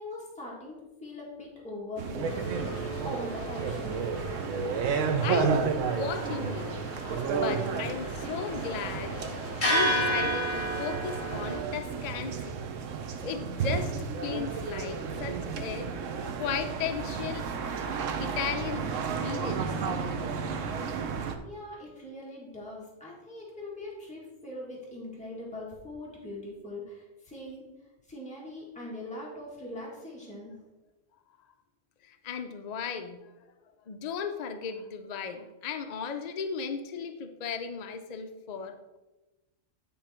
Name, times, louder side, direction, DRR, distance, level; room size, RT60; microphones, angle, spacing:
voice 1, 0.0-4.1 21.1-27.7 28.1-30.5, left 1 dB, 5° left, -5 dB, 1.8 m, -42 dB
sound 1, 2.0-21.4, right 5 dB, 80° right, 1.1 m, -32 dB
sound 2, 2.2-11.6, equal, 40° left, 2.6 m, -33 dB
voice 2, 5.2-6.8 7.3-9.2 9.6-12.6 13.2-15.9 16.2-17.5 18.2-19.8 32.0-33.3 33.9-39.0, left 6 dB, 60° left, 7 dB, 0.4 m, -36 dB
10.0 x 3.8 x 4.3 m, 1.1 s
omnidirectional pair, 1.3 m